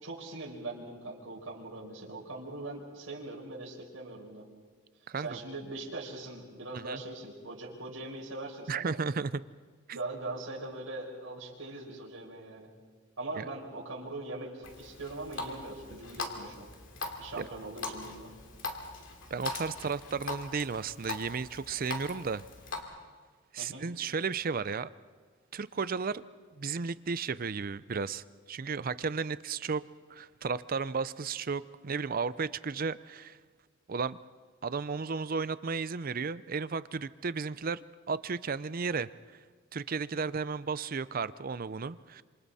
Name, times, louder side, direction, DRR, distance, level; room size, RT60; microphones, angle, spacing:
voice 1, 0.0-4.4 5.2-9.0 9.9-12.7 13.2-16.7 17.2-18.3 23.6-23.8, right 2 dB, 85° right, -4 dB, 4.9 m, -41 dB
voice 2, 5.1-5.4 6.7-7.0 8.7-9.4 9.9-10.0 13.4-13.5 17.3-17.5 19.3-22.4 23.5-24.9 25.5-26.2 26.5-29.8 30.1-33.4 33.9-34.2 34.6-39.4 39.7-42.2, right 5 dB, 45° right, 16 dB, 0.5 m, -34 dB
Water tap faucet, 14.6-22.8, left 3 dB, 70° left, 2.7 m, -41 dB
28.0 x 27.0 x 4.2 m, 1.5 s
head